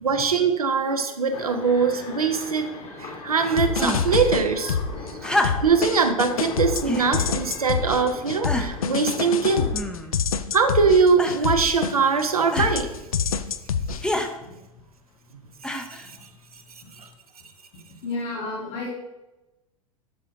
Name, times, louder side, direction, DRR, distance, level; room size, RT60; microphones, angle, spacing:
voice 1, 0.0-2.7 3.0-4.8 5.0-5.1 5.6-9.7 10.5-12.9 15.7-15.9 17.0-17.1, right 5 dB, 80° right, 5 dB, 0.8 m, -22 dB
sound 1, 1.3-9.7, left 3 dB, 35° left, 1.8 m, -39 dB
sound 2, 3.6-5.1 5.4-12.2 12.6-14.1, left 6 dB, 75° left, 0.5 m, -26 dB
sound 3, 3.8-4.2 5.2-5.9 6.8-7.1 7.9-8.0 8.4-8.9 9.7-10.3 11.2-11.6 12.5-12.8 14.0-14.3 15.6-16.1 17.1-17.2, left 1 dB, 5° left, 0.7 m, -28 dB
voice 2, 18.0-18.9, left 2 dB, 60° left, -6 dB, 2.9 m, -32 dB
11.0 x 6.2 x 2.8 m, 1.0 s
figure-of-eight pair, 85°, 18 cm